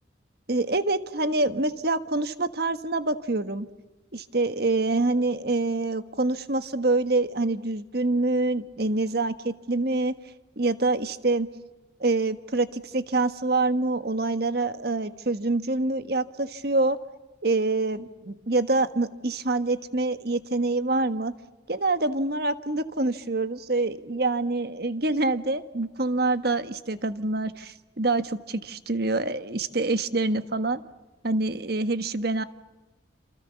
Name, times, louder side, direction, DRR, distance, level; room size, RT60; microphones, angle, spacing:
voice 1, 0.5-3.7 4.1-10.1 10.6-11.5 12.0-17.0 17.4-21.3 21.7-30.8 31.2-32.4, right 2 dB, 55° right, 10 dB, 1.5 m, -26 dB
28.5 x 27.5 x 7.1 m, 1.1 s
head